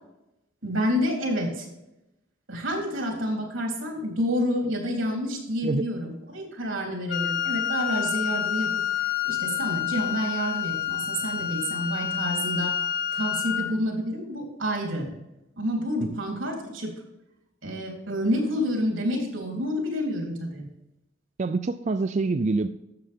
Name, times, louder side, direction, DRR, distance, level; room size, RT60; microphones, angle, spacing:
voice 1, 0.6-1.7 2.5-8.7 9.3-12.8 13.1-15.1 15.6-16.9 17.6-20.7, equal, 85° right, 0 dB, 3.6 m, -28 dB
Wind instrument woodwind instrument, 7.1-13.7, left 9 dB, 55° left, 1.9 m, -28 dB
voice 2, 21.4-22.7, right 3 dB, 35° right, 9 dB, 0.4 m, -25 dB
12.5 x 7.7 x 3.6 m, 0.91 s
head